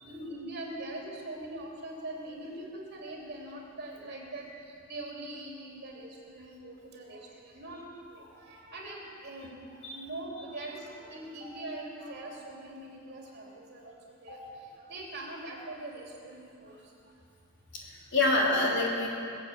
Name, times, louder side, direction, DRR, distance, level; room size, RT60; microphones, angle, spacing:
voice 1, 0.0-7.8 8.1-17.1, right 1 dB, 55° right, -2 dB, 3.1 m, -42 dB
voice 2, 17.7-19.1, left 2 dB, 60° left, -3 dB, 3.4 m, -27 dB
21.5 x 7.8 x 7.7 m, 2.6 s
head